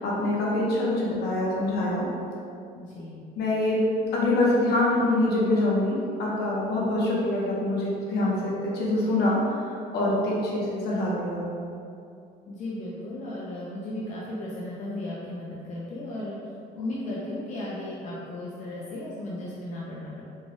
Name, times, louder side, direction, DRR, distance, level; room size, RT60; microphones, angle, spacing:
voice 1, 0.0-2.1 3.4-9.4 9.9-11.4, left 1 dB, 75° left, -5 dB, 1.0 m, -25 dB
voice 2, 2.7-3.2 12.5-16.4 16.7-20.2, left 1 dB, 45° left, -6 dB, 0.5 m, -35 dB
4.1 x 2.3 x 3.6 m, 2.5 s
cardioid pair, 160°, 17 cm